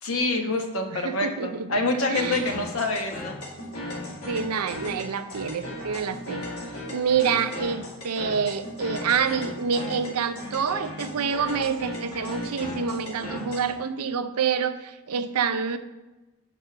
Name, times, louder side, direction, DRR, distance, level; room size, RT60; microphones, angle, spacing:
voice 1, 0.0-3.4, left 2 dB, 65° left, 4 dB, 1.1 m, -26 dB
voice 2, 0.9-1.8 2.1-2.4 4.3-6.4 6.9-15.8, right 6 dB, 90° right, 10 dB, 0.6 m, -27 dB
sound 1, 2.1-13.7, left 1 dB, 80° left, 2.4 m, -36 dB
6.1 x 4.8 x 6.7 m, 1.1 s
head